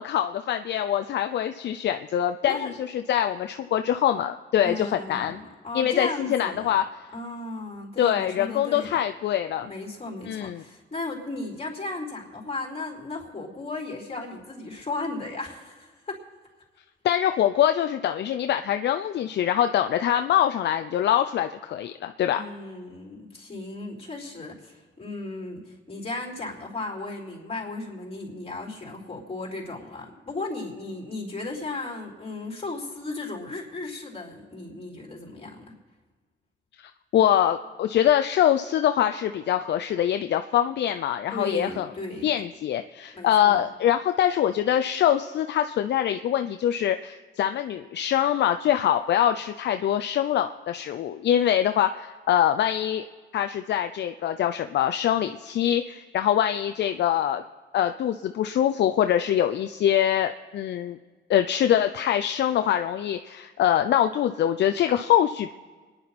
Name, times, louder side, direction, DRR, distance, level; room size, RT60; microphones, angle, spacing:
voice 1, 0.0-5.4 5.7-6.8 8.0-9.7 10.3-10.6 17.0-22.4 36.8-41.9 42.2-53.0 53.3-57.4 57.7-61.0 61.3-65.5, left 10 dB, 60° left, 8 dB, 0.5 m, -24 dB
voice 2, 2.4-2.8 4.6-6.7 7.1-9.0 9.6-16.3 22.3-35.6 41.3-42.4 43.1-43.6, left 2 dB, 30° left, -1 dB, 4.1 m, -35 dB
25.0 x 10.5 x 4.2 m, 1.4 s
cardioid pair, 90°, 20 cm